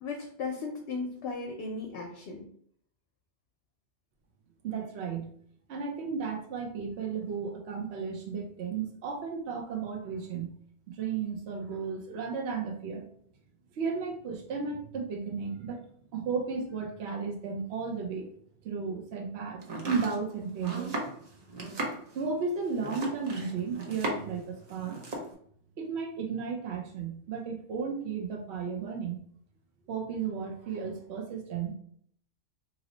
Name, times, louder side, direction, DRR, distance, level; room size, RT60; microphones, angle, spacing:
voice 1, 0.0-2.5, left 4 dB, 70° left, 1 dB, 0.8 m, -36 dB
voice 2, 4.6-5.3 5.7-10.5 10.9-13.1 13.8-15.8 16.1-18.3 18.6-20.9 22.1-25.0 25.8-29.2 29.9-31.7, right 5 dB, 70° right, 2 dB, 0.9 m, -34 dB
Domestic sounds home sounds, 19.6-24.4 24.7-25.3, right 2 dB, 45° right, 0.6 m, -36 dB
2.9 x 2.0 x 3.8 m, 0.62 s
omnidirectional pair, 1.2 m